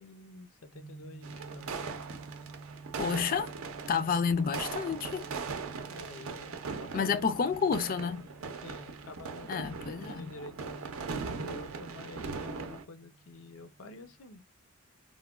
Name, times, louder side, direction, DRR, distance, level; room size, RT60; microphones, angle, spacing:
voice 1, 0.0-1.8 5.9-7.5 8.5-14.4, left 2 dB, 85° left, 0.6 m, -48 dB
sound 1, 0.7-14.2, right 4 dB, 30° right, 0.6 m, -52 dB
sound 2, 1.2-12.8, right 4 dB, 85° right, 0.5 m, -40 dB
voice 2, 3.0-3.5 3.9-5.2 6.9-8.2 9.5-10.3, left 6 dB, 40° left, 0.3 m, -30 dB
3.1 x 2.1 x 2.3 m
head